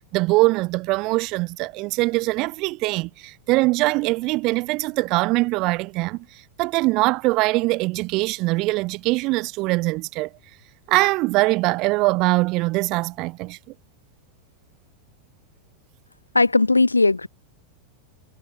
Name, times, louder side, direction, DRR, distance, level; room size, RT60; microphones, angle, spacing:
voice 1, 0.1-6.2 6.6-10.3 10.9-13.6, right 22 dB, 40° right, 1.6 m, -22 dB
voice 2, 16.3-17.3, left 3 dB, 80° left, 1.4 m, -17 dB
figure-of-eight pair, 90°, 0 cm